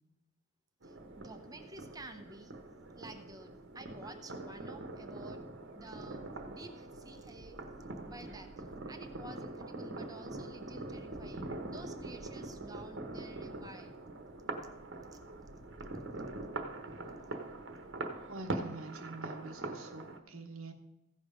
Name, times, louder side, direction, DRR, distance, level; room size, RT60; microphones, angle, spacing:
voice 1, 0.8-2.5 2.9-5.4 5.8-7.6 8.0-8.5 8.9-14.0, right 2 dB, 15° right, 7 dB, 0.7 m, -51 dB
sound 1, 0.8-20.2, right 2 dB, 55° right, 1.1 m, -43 dB
voice 2, 18.3-20.7, right 2 dB, 80° right, 3 dB, 1.1 m, -46 dB
15.5 x 5.5 x 5.0 m, 0.88 s
head